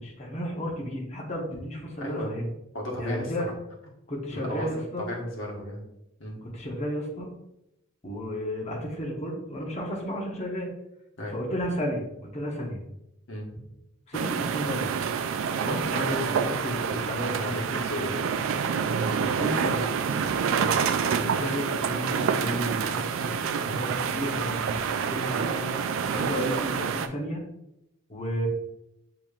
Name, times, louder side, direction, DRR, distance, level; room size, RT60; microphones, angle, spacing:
voice 1, 0.0-2.5 3.0-3.5 4.1-5.1 6.5-7.3 8.0-10.7 11.3-12.8 14.1-14.9 15.6-18.2 19.2-20.1 21.0-27.4 28.1-28.5, equal, 35° left, -2 dB, 1.0 m, -33 dB
voice 2, 2.0-2.3 2.7-3.3 4.3-4.7 5.0-5.8 6.2-6.4 11.2-11.4 13.3-13.6 17.3-18.3, equal, 80° left, -2 dB, 1.2 m, -34 dB
sound 1, 14.1-27.1, right 6 dB, 85° right, 0.3 m, -27 dB
6.9 x 2.9 x 2.4 m, 0.85 s
head